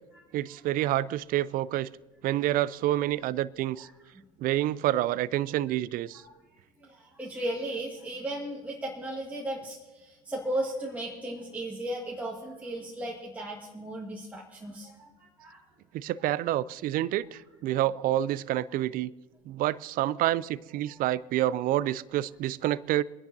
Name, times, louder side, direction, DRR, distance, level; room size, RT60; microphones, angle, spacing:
voice 1, 0.3-1.9 2.2-3.9 4.4-6.2 15.9-19.1 19.5-23.0, right 14 dB, 50° right, 20 dB, 0.5 m, -28 dB
voice 2, 6.8-15.6, right 1 dB, 5° right, -4 dB, 2.0 m, -36 dB
26.0 x 10.5 x 2.7 m, 1.2 s
hypercardioid pair, 75°, 19 cm